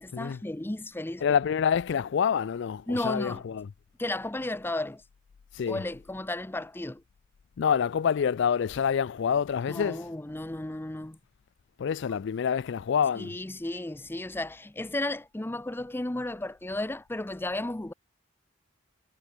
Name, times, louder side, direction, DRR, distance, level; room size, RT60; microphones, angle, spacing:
voice 1, 0.0-1.2 2.9-3.4 4.0-5.0 5.7-7.0 9.7-11.2 13.2-17.9, left 1 dB, 10° left, 0.6 m, -34 dB
voice 2, 1.2-3.7 5.6-5.8 7.6-10.0 11.8-13.3, left 7 dB, 65° left, 0.4 m, -27 dB
head